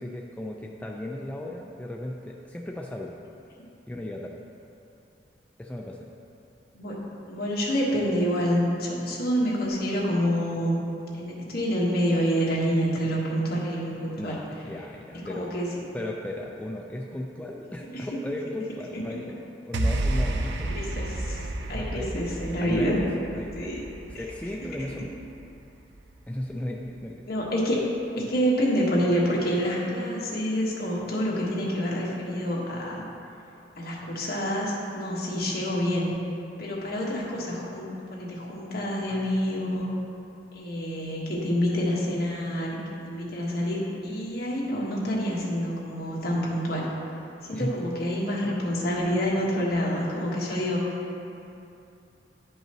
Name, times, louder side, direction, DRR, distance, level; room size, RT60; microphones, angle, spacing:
voice 1, 0.0-3.2 3.9-4.3 5.6-6.2 14.2-15.5 15.9-20.8 21.7-22.1 22.6-23.7 24.1-25.2 26.3-27.3 47.5-47.7, left 1 dB, 10° left, -1 dB, 0.3 m, -35 dB
voice 2, 6.7-10.8 11.1-14.3 15.3-15.8 17.9-18.1 18.9-19.2 20.6-23.0 23.4-23.8 27.3-27.8 28.2-33.0 33.8-36.1 36.6-39.9 40.5-46.9 47.4-50.8, equal, 60° left, -4 dB, 1.4 m, -27 dB
sound 1, 19.7-26.2, right 1 dB, 75° right, 0.5 m, -31 dB
10.5 x 5.4 x 3.0 m, 2.7 s
head